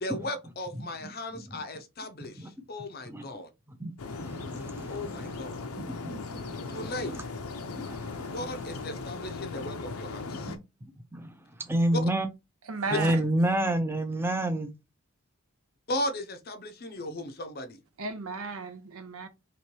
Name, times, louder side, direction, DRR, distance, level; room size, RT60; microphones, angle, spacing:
voice 1, 0.0-3.5 4.9-5.6 6.7-7.3 8.3-10.5 11.9-12.0 12.9-13.0 15.9-17.8, left 1 dB, 45° left, 0.6 m, -36 dB
voice 2, 3.8-5.3 5.8-7.2 7.7-8.3 11.1-11.3 11.6-12.2 12.9-14.7, right 1 dB, 10° right, 0.5 m, -30 dB
sound 1, 4.0-10.6, left 4 dB, 85° left, 0.6 m, -38 dB
voice 3, 12.7-13.2 18.0-19.3, right 4 dB, 75° right, 0.7 m, -34 dB
3.1 x 3.0 x 4.4 m
head